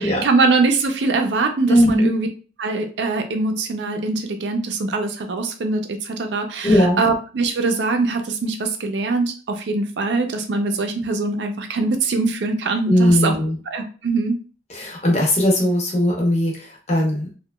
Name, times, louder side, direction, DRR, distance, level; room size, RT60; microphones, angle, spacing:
voice 1, 0.2-2.3 2.6-13.3 13.7-14.4, right 3 dB, 80° right, 5 dB, 0.4 m, -22 dB
voice 2, 1.7-2.1 6.6-7.0 12.9-13.6 14.7-17.3, equal, 40° left, -2 dB, 0.8 m, -18 dB
2.8 x 2.2 x 2.2 m, 0.38 s
head